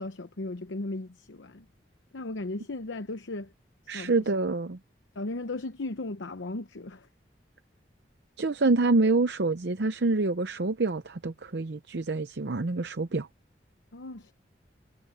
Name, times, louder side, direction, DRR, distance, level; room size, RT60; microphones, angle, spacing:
voice 1, 0.0-1.6 2.1-3.5 3.8-4.1 5.1-7.1 13.9-14.3, left 2 dB, 85° left, 0.9 m, -36 dB
voice 2, 3.9-4.8 8.4-13.3, right 3 dB, 65° right, 0.7 m, -26 dB
head